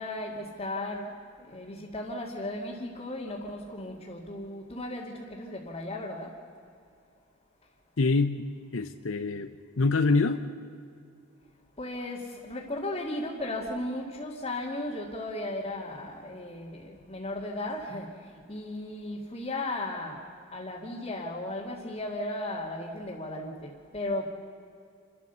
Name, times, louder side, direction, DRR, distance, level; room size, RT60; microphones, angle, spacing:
voice 1, 0.0-6.3 11.8-24.3, left 1 dB, 30° left, -5 dB, 2.2 m, -36 dB
voice 2, 8.0-10.4, left 3 dB, 65° left, 7 dB, 0.8 m, -26 dB
29.0 x 13.5 x 6.9 m, 2.4 s
head